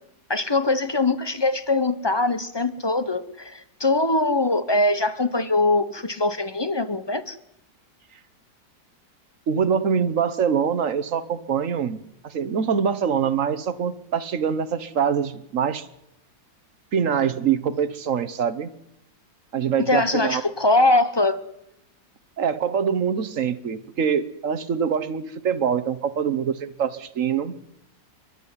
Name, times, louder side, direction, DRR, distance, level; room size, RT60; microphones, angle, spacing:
voice 1, 0.3-7.4 19.8-21.4, left 2 dB, 20° left, 13 dB, 0.6 m, -22 dB
voice 2, 9.5-12.0 12.2-15.9 16.9-18.7 19.5-20.4 22.4-27.6, right 7 dB, 50° right, 14 dB, 1.3 m, -24 dB
28.5 x 12.0 x 9.8 m, 0.85 s
omnidirectional pair, 2.0 m